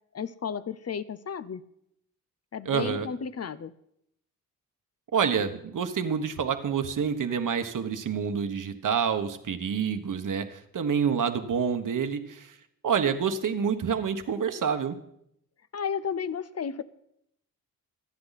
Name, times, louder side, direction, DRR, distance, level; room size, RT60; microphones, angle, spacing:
voice 1, 0.1-1.6 2.5-3.7 15.7-16.8, left 6 dB, 45° left, 14 dB, 0.7 m, -33 dB
voice 2, 2.6-3.1 5.1-12.6 12.8-15.0, right 7 dB, 60° right, 7 dB, 1.4 m, -28 dB
26.0 x 9.7 x 4.2 m, 0.75 s
cardioid pair, 90°, 35 cm